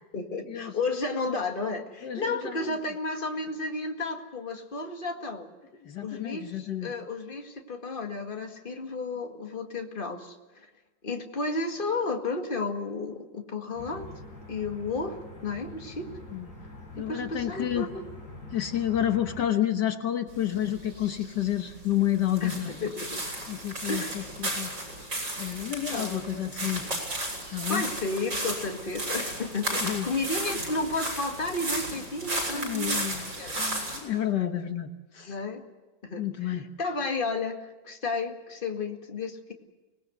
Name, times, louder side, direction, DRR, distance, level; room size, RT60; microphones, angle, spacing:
voice 1, 0.1-5.5 6.0-10.7 11.0-14.1 14.5-15.2 15.4-16.1 17.0-18.0 22.4-23.2 23.9-24.1 25.9-26.5 27.7-33.1 33.4-33.6 35.3-35.6 36.0-39.5, left 3 dB, 30° left, 3 dB, 2.1 m, -32 dB
voice 2, 2.0-2.8 5.8-6.9 16.3-16.5 17.0-17.9 18.5-22.9 23.5-24.7 25.4-26.9 27.5-27.8 29.8-30.1 32.5-33.3 33.6-35.4 36.2-36.7, left 11 dB, 70° left, 6 dB, 1.8 m, -30 dB
sound 1, 13.7-19.5, left 2 dB, 45° left, 6.8 m, -44 dB
sound 2, 20.3-34.0, right 1 dB, 80° right, 7.7 m, -34 dB
25.5 x 19.0 x 8.0 m, 1.2 s
omnidirectional pair, 2.0 m